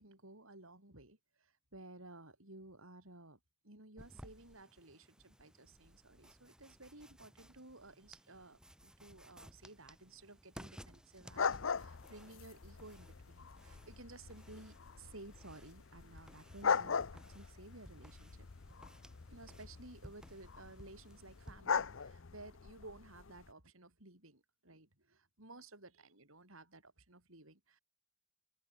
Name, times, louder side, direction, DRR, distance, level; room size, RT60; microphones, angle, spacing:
voice 1, 0.0-3.4 3.6-18.5 19.3-27.8, right 2 dB, 70° right, 6.9 m, -56 dB
sound 1, 4.0-21.5, equal, 5° right, 6.3 m, -59 dB
sound 2, 11.3-23.5, left 6 dB, 60° left, 0.7 m, -41 dB
open air
head